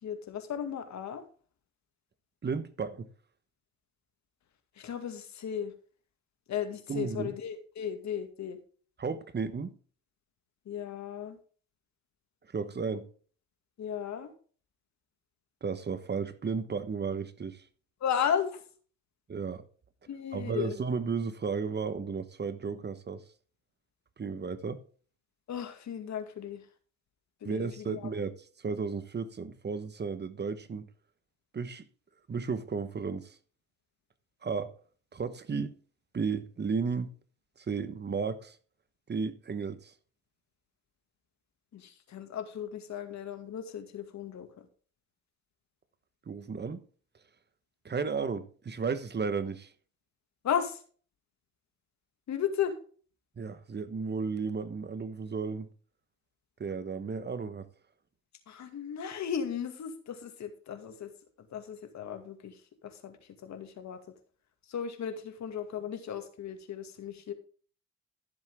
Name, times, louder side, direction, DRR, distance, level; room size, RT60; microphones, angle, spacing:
voice 1, 0.0-1.2 4.8-5.7 6.5-8.6 10.7-11.4 13.8-14.3 18.0-18.6 20.1-20.7 25.5-26.6 27.4-28.1 41.7-44.7 50.4-50.8 52.3-52.7 58.5-61.1 61.5-62.6 62.8-64.0 64.7-67.3, left 8 dB, 65° left, 2.2 m, -35 dB
voice 2, 2.4-3.1 6.9-7.3 9.0-9.7 12.5-13.1 15.6-17.6 19.3-19.6 20.3-23.2 24.2-24.8 27.4-30.9 31.5-31.8 32.3-33.4 34.4-34.7 35.1-35.7 36.1-37.1 37.7-38.6 39.1-39.9 46.3-46.8 47.8-49.7 53.4-55.7 56.6-57.7, right 5 dB, 35° right, 1.2 m, -33 dB
14.0 x 7.5 x 3.6 m
cardioid pair, 90°, 30 cm